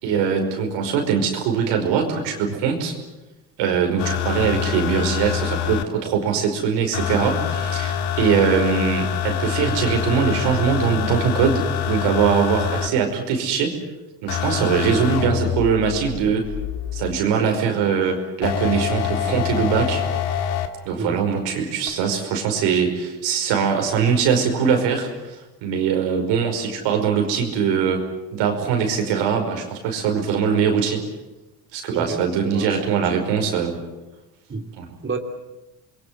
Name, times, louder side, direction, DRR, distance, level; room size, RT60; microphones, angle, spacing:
voice 1, 0.0-2.9 3.6-13.7 14.2-16.5 16.9-20.0 20.9-28.0 28.3-31.0 31.7-33.8 34.8-34.9, right 6 dB, 90° right, 3 dB, 5.3 m, -22 dB
sound 1, 4.0-5.8 6.9-12.9 14.3-17.2 18.4-20.7 21.9-22.0, left 9 dB, 65° left, 2.4 m, -25 dB
voice 2, 17.6-18.0 21.0-21.2 31.9-33.1 34.5-34.7 35.0-35.2, right 4 dB, 30° right, 4 dB, 2.8 m, -31 dB
27.5 x 22.0 x 7.8 m, 1.0 s
cardioid pair, 105°, 42 cm